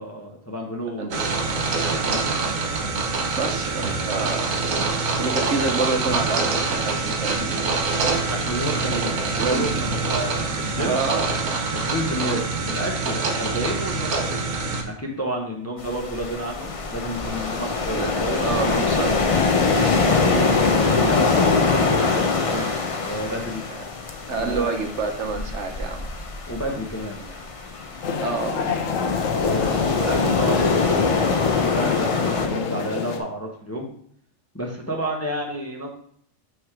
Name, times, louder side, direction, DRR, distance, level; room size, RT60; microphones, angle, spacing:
voice 1, 0.0-1.4 2.0-2.2 8.3-11.0 11.7-14.5 14.8-18.4 19.7-21.3 21.7-22.8 23.0-23.6 24.4-24.9 26.5-27.4 29.5-33.9 34.5-35.9, right 1 dB, 15° left, -1 dB, 0.8 m, -30 dB
sound 1, 1.1-14.8, right 4 dB, 85° right, 1.4 m, -25 dB
voice 2, 3.4-4.6 5.2-7.8 9.3-9.7 10.8-11.4 17.9-19.4 24.3-26.1 28.1-28.6, right 4 dB, 65° right, 4 dB, 1.2 m, -28 dB
sound 2, 15.8-32.5, left 4 dB, 40° left, 0.5 m, -23 dB
sound 3, 28.0-33.2, left 5 dB, 75° left, 1.1 m, -27 dB
6.1 x 3.6 x 4.7 m, 0.64 s
omnidirectional pair, 1.4 m